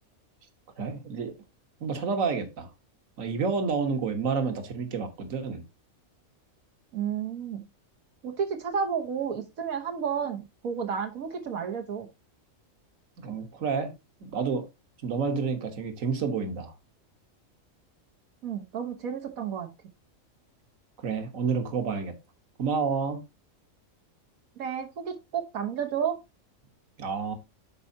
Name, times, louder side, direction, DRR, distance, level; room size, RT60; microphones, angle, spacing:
voice 1, 0.8-1.3 1.8-2.7 3.2-5.6 13.2-13.9 14.3-14.7 15.0-16.7 21.0-22.1 22.6-23.2 27.0-27.3, right 5 dB, 70° right, 1.7 m, -29 dB
voice 2, 6.9-7.6 8.2-12.1 18.4-19.7 24.6-26.2, right 7 dB, 85° right, 1.5 m, -31 dB
11.5 x 4.5 x 2.7 m
omnidirectional pair, 1.4 m